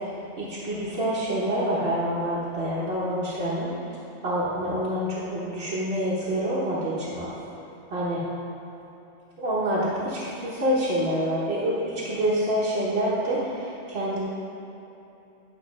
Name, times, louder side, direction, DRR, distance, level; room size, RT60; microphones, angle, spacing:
voice 1, 0.4-3.7 4.2-7.3 7.9-8.2 9.4-14.2, equal, 65° right, -9 dB, 1.5 m, -27 dB
9.3 x 4.1 x 5.4 m, 3.0 s
omnidirectional pair, 1.1 m